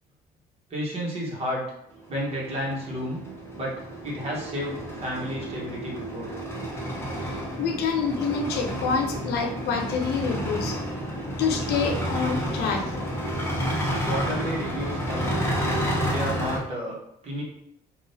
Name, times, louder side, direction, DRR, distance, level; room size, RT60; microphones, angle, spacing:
voice 1, 0.7-1.6 2.1-3.2 3.5-6.3 14.0-15.3 16.1-17.0 17.2-17.4, equal, 35° right, -4 dB, 1.2 m, -31 dB
sound 1, 2.0-16.6, equal, 15° left, 0.8 m, -30 dB
voice 2, 7.2-10.8 11.4-12.9, left 5 dB, 75° left, 2 dB, 0.7 m, -27 dB
3.6 x 2.6 x 2.7 m, 0.76 s
cardioid pair, 110°, 17 cm